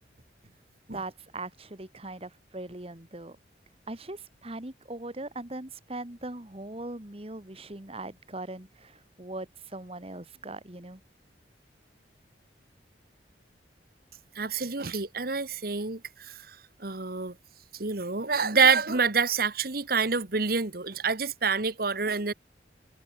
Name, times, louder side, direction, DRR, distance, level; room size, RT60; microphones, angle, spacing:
voice 1, 0.9-3.4 3.9-11.0, right 2 dB, 35° right, 2.1 m, -40 dB
voice 2, 14.3-17.3 17.7-22.3, right 5 dB, 55° right, 1.6 m, -27 dB
head